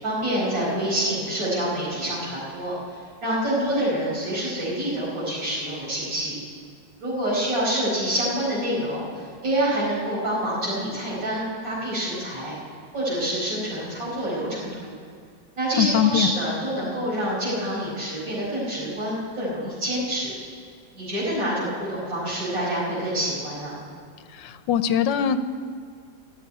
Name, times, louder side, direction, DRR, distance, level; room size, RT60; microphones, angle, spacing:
voice 1, 0.0-6.3 7.0-12.5 12.9-14.9 15.6-20.3 20.9-23.8, right 1 dB, 85° right, -7 dB, 5.5 m, -27 dB
voice 2, 15.8-16.3 24.3-25.4, left 9 dB, 80° left, 11 dB, 1.3 m, -22 dB
14.0 x 8.5 x 9.5 m, 2.1 s
omnidirectional pair, 2.0 m